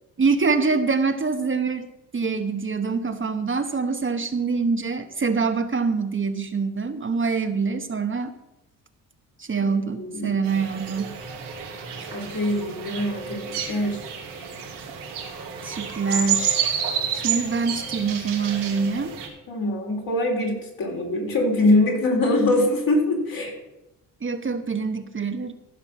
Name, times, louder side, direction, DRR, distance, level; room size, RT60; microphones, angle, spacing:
voice 1, 0.2-1.9 2.1-8.3 9.4-11.1 12.0-12.1 15.6-16.8 17.1-19.2 24.2-25.5, right 4 dB, 30° right, 7 dB, 1.1 m, -25 dB
voice 2, 10.0-10.4 12.1-14.0 19.5-23.5, left 1 dB, 55° left, 0 dB, 3.9 m, -23 dB
sound 1, 10.4-19.3, right 7 dB, 85° right, 2.7 m, -30 dB
14.5 x 5.8 x 5.9 m, 0.93 s
supercardioid pair, 60°, 40 cm